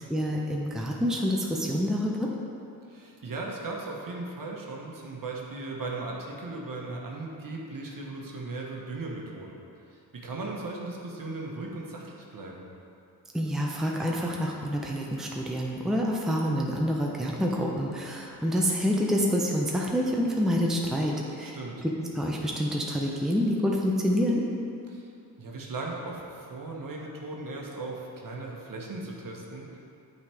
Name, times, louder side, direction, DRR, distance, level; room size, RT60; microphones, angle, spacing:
voice 1, 0.1-2.3 13.3-21.6 21.8-24.4, equal, ahead, -2 dB, 0.8 m, -27 dB
voice 2, 2.9-9.6 9.9-12.6 21.4-21.8 24.9-25.1 25.4-29.8, right 2 dB, 45° right, -2 dB, 1.3 m, -37 dB
8.5 x 4.1 x 3.5 m, 2.6 s
supercardioid pair, 40°, 45 cm